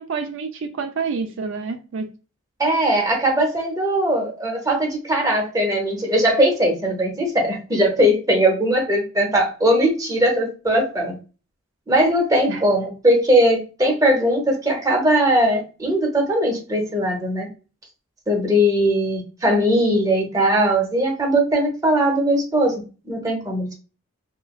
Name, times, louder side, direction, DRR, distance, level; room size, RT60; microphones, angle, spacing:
voice 1, 0.0-2.1 12.5-12.6, right 5 dB, 70° right, 0.4 m, -28 dB
voice 2, 2.6-11.1 11.9-17.5 18.3-23.8, right 1 dB, 15° right, 0.7 m, -19 dB
3.0 x 2.5 x 2.2 m
head